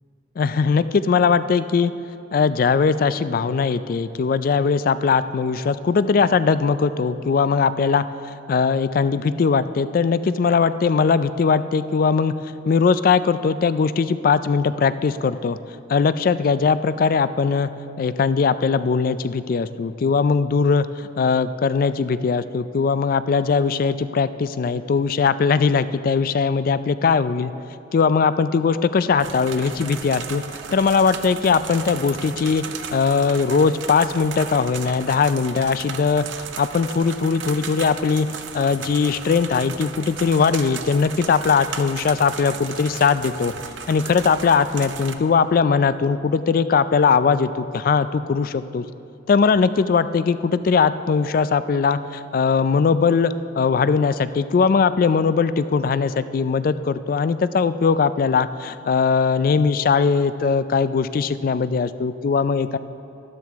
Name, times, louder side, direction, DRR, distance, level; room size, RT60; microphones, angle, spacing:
voice 1, 0.4-1.9 2.3-8.0 8.5-12.3 12.6-15.6 15.9-17.7 18.0-27.5 27.9-30.4 30.7-32.6 32.9-36.3 36.6-38.3 38.5-43.5 43.9-48.8 49.3-62.8, left 5 dB, 50° left, 14 dB, 0.3 m, -20 dB
sound 1, 29.2-45.1, right 6 dB, 80° right, 0.6 m, -35 dB
13.0 x 12.0 x 3.5 m, 2.7 s
head